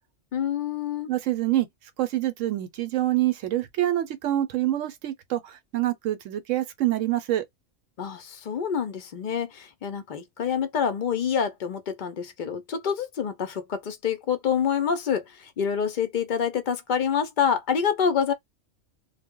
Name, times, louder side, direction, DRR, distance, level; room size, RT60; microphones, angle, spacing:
voice 1, 0.3-1.1 8.0-18.3, left 7 dB, 55° left, 0.5 m, -27 dB
voice 2, 1.1-1.7 2.0-7.4, right 14 dB, 90° right, 0.9 m, -26 dB
2.2 x 2.0 x 3.6 m
omnidirectional pair, 1.3 m